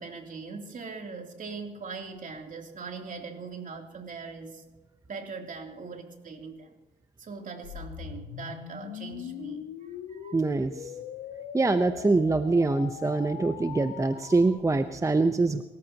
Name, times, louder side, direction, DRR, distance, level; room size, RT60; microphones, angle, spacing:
voice 1, 0.0-4.6 5.1-6.7 7.2-9.6 10.1-10.4, right 4 dB, 50° right, 3 dB, 3.1 m, -40 dB
sound 1, 7.6-14.5, left 9 dB, 90° left, 1.4 m, -41 dB
voice 2, 10.3-10.9 11.5-15.6, right 3 dB, 15° right, 9 dB, 0.8 m, -24 dB
27.0 x 14.0 x 2.9 m, 1.2 s
supercardioid pair, 65°, 18 cm